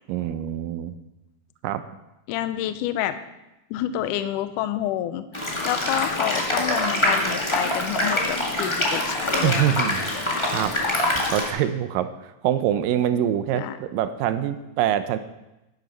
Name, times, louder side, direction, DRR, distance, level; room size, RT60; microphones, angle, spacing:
voice 1, 0.1-0.9 1.6-1.8 9.4-10.1 10.5-10.7 11.3-15.2, right 11 dB, 80° right, 11 dB, 2.1 m, -24 dB
voice 2, 2.3-3.2 3.7-9.9 13.6-13.7, left 12 dB, 80° left, 11 dB, 1.9 m, -28 dB
sound 1, 5.3-11.5, left 1 dB, 45° left, 0.3 m, -25 dB
12.0 x 9.3 x 5.2 m, 0.95 s
omnidirectional pair, 4.3 m